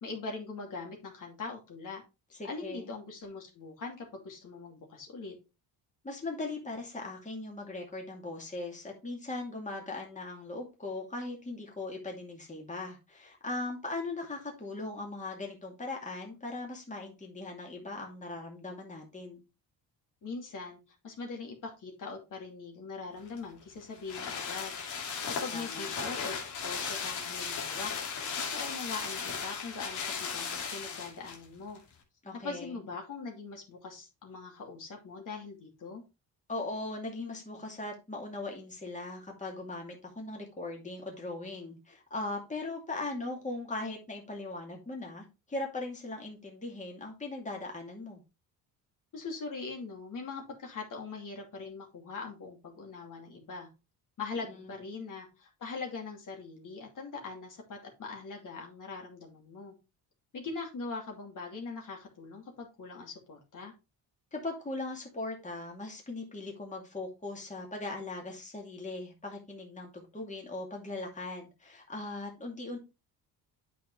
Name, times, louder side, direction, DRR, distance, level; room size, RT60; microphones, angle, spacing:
voice 1, 0.0-2.0 2.4-5.3 20.2-24.7 25.4-27.9 28.4-31.8 32.4-36.0 49.1-53.7 54.2-59.7 60.3-63.7, left 4 dB, 50° left, 1 dB, 2.6 m, -41 dB
voice 2, 2.4-2.9 6.0-19.4 25.5-25.9 32.2-32.8 36.5-48.2 54.4-54.8 64.3-72.8, left 2 dB, 20° left, 0 dB, 2.5 m, -39 dB
sound 1, 23.3-31.4 31.8-31.9, left 6 dB, 80° left, 2.4 m, -36 dB
8.4 x 5.8 x 3.2 m, 0.28 s
cardioid pair, 100°, 40 cm